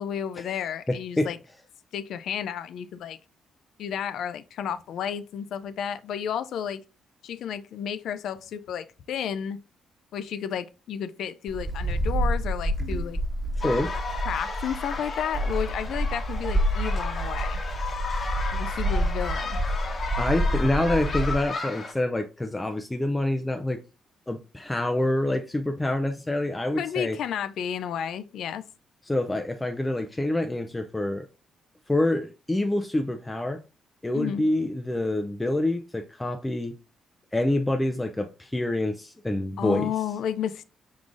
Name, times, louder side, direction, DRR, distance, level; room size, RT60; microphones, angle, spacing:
voice 1, 0.0-1.4 1.9-3.2 3.8-6.8 7.2-9.6 10.1-13.2 14.3-17.6 18.5-19.6 26.8-28.7 34.1-34.5 39.6-40.6, left 8 dB, 75° left, 0.4 m, -32 dB
voice 2, 0.9-1.3 13.6-13.9 20.2-23.8 24.3-27.2 29.1-31.2 31.9-33.6 34.0-36.8 37.3-39.9, left 1 dB, 15° left, 0.4 m, -26 dB
Wind, 11.5-21.5, equal, 10° right, 1.3 m, -28 dB
sound 1, 13.6-21.9, left 4 dB, 40° left, 0.9 m, -34 dB
4.7 x 3.7 x 2.5 m
cardioid pair, 90°, 0 cm